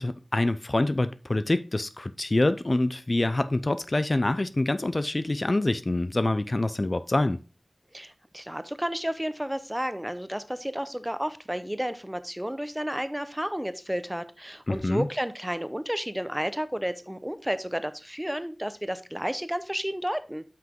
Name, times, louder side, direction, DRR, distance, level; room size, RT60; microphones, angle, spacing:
voice 1, 0.0-7.4 14.7-15.1, left 2 dB, 40° left, 0.4 m, -26 dB
voice 2, 7.9-20.4, equal, 10° right, 0.7 m, -32 dB
7.7 x 5.8 x 3.7 m
wide cardioid pair, 70°, 0 cm